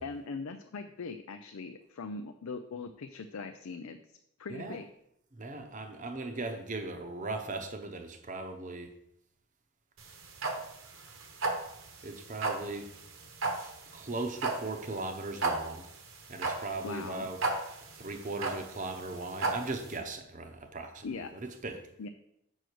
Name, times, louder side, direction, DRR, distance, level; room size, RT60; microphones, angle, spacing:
voice 1, 0.0-4.0 4.4-4.8 16.8-17.3 21.0-21.3 22.0-22.1, left 4 dB, 80° left, 7 dB, 0.5 m, -40 dB
voice 2, 4.5-4.8 5.3-8.9 12.0-12.9 13.9-15.8 16.3-17.4 17.9-21.1 21.3-21.8, right 2 dB, 35° right, 6 dB, 0.8 m, -38 dB
sound 1, 10.0-19.9, right 3 dB, 65° right, 1.1 m, -34 dB
6.6 x 6.1 x 4.6 m, 0.77 s
head